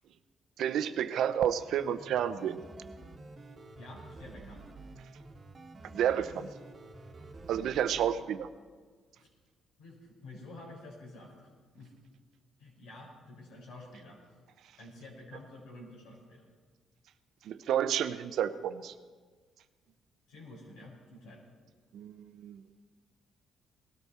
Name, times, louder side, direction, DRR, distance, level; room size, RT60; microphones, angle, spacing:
voice 1, 0.6-2.6 5.9-6.5 7.5-8.5 17.5-18.9 21.9-22.6, right 9 dB, 75° right, 12 dB, 0.6 m, -30 dB
sound 1, 1.8-8.1, right 2 dB, 40° right, 1.5 m, -49 dB
voice 2, 3.8-4.7 8.1-8.2 9.2-9.3 9.8-11.9 12.6-14.4 14.8-16.4 20.3-21.4, left 2 dB, 85° left, -2 dB, 4.8 m, -50 dB
19.5 x 13.5 x 4.3 m, 1.5 s
cardioid pair, 90°, 0 cm